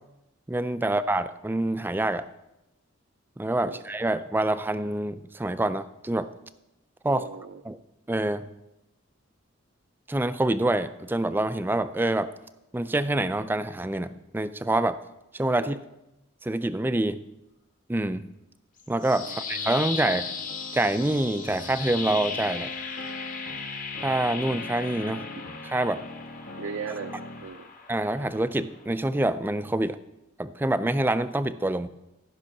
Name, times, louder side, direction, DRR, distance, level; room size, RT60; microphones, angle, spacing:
voice 1, 0.5-2.3 3.4-6.3 7.0-7.3 7.7-7.8 8.1-8.5 10.1-12.3 12.7-15.0 15.3-15.8 16.4-17.2 17.9-18.3 18.9-20.2 20.7-22.7 24.0-25.3 25.6-26.0 27.9-30.0 30.4-31.9, right 1 dB, 10° right, 13 dB, 0.3 m, -26 dB
voice 2, 7.1-7.6 15.6-15.8 19.2-19.4 20.1-20.2 26.6-27.1 27.4-27.7, right 5 dB, 65° right, 6 dB, 0.5 m, -37 dB
sound 1, 18.8-28.9, left 5 dB, 40° left, 1.2 m, -37 dB
sound 2, 19.5-27.4, left 2 dB, 70° left, 1.3 m, -42 dB
14.0 x 5.5 x 5.9 m, 0.93 s
head